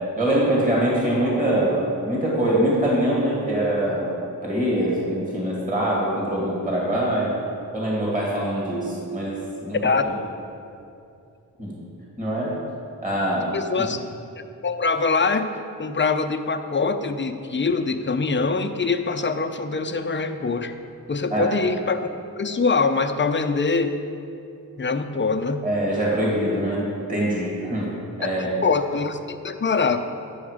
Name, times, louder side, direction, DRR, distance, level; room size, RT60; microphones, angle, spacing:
voice 1, 0.2-4.1 4.4-7.3 7.7-9.8 11.6-11.8 12.2-12.5 13.0-13.5 13.8-13.9 21.3-21.5 25.6-27.9 28.2-28.5, right 1 dB, 20° right, -5 dB, 2.4 m, -23 dB
voice 2, 13.5-14.0 14.6-15.5 15.8-20.7 21.1-22.1 22.4-23.9 24.8-25.7 28.2-30.0, left 4 dB, 30° left, 7 dB, 0.6 m, -23 dB
10.5 x 6.3 x 5.0 m, 2.6 s
cardioid pair, 60°, 36 cm